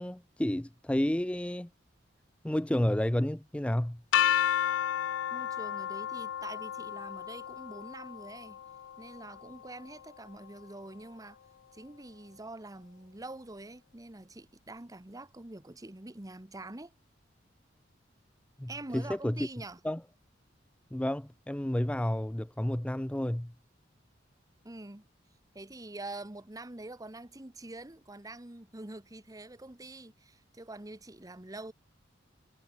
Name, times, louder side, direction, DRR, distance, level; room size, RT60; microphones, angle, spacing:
voice 1, 0.0-1.7 2.4-4.0 18.6-19.5 19.8-20.0 20.9-23.5, left 1 dB, 5° left, 0.4 m, -31 dB
sound 1, 4.1-10.0, left 10 dB, 90° left, 0.3 m, -32 dB
voice 2, 5.3-8.6 9.0-11.4 11.7-16.9 18.7-19.8 24.6-25.0 25.5-31.7, right 2 dB, 20° right, 1.1 m, -45 dB
head